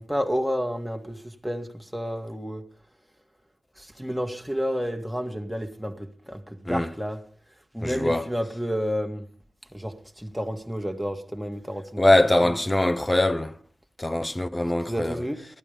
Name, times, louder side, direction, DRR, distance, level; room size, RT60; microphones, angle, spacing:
voice 1, 0.0-2.6 3.8-7.2 7.7-9.3 9.7-12.0 12.4-12.5 14.8-15.5, equal, ahead, 1.7 m, -30 dB
voice 2, 7.8-8.3 12.0-13.5 14.0-15.1, left 1 dB, 15° left, 0.9 m, -22 dB
15.5 x 12.0 x 5.1 m
wide cardioid pair, 95°, 0 cm